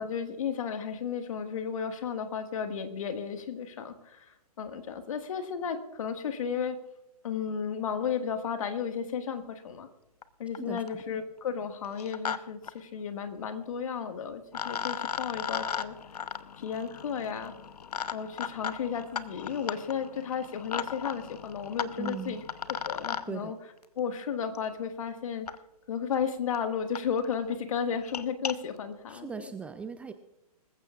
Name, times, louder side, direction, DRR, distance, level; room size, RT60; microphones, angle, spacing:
voice 1, 0.0-6.8 7.2-9.9 10.4-16.0 16.6-17.5 18.1-22.4 22.7-23.6 24.0-25.5 25.9-29.5, left 7 dB, 55° left, 7 dB, 1.8 m, -33 dB
sound 1, 10.2-10.3 10.6-11.0 11.8-12.4 12.6-12.7 14.0-14.1 14.5-23.2 24.6-24.7 25.5-25.6 26.2-26.3 26.5-26.6 27.0-27.1 27.3-27.5 27.9-28.5, left 7 dB, 75° left, 0.8 m, -36 dB
voice 2, 22.0-22.4 23.3-23.6 29.1-30.1, right 5 dB, 5° right, 9 dB, 0.4 m, -38 dB
25.5 x 15.0 x 2.4 m, 0.95 s
hypercardioid pair, 130°, 20 cm